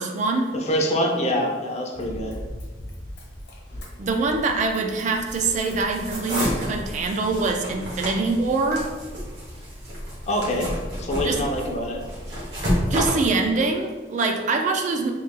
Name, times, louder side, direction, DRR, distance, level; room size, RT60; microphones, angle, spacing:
voice 1, 0.0-0.5 4.0-8.9 11.2-11.4 12.9-15.1, right 3 dB, 45° right, 4 dB, 0.3 m, -24 dB
voice 2, 0.5-2.4 10.3-10.7 11.0-12.0, equal, 40° left, 1 dB, 0.5 m, -25 dB
Run, 1.9-7.2 7.8-7.9, left 1 dB, 65° left, 1.0 m, -40 dB
sound 1, 5.1-13.1, equal, 70° right, 1.2 m, -30 dB
3.1 x 2.7 x 3.6 m, 1.3 s
head